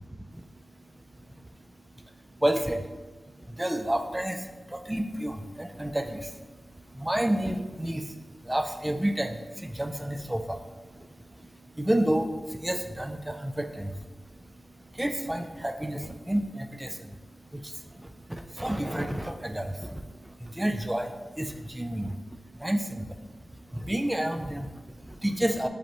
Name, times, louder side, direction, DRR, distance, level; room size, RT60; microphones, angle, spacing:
voice 1, 0.2-25.7, right 1 dB, 10° right, 6 dB, 0.4 m, -31 dB
5.0 x 3.3 x 2.9 m, 1.2 s
wide cardioid pair, 85°, 0 cm